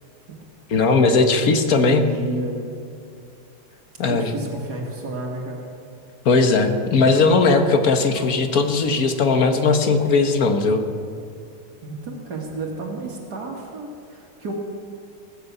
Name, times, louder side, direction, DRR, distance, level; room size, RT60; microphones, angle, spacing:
voice 1, 0.7-2.1 4.0-4.3 6.3-10.8, left 4 dB, 65° left, 6 dB, 1.6 m, -18 dB
voice 2, 1.8-2.7 4.1-5.6 11.8-14.5, right 2 dB, 75° right, 0 dB, 2.3 m, -31 dB
20.0 x 6.9 x 8.3 m, 2.5 s
omnidirectional pair, 1.7 m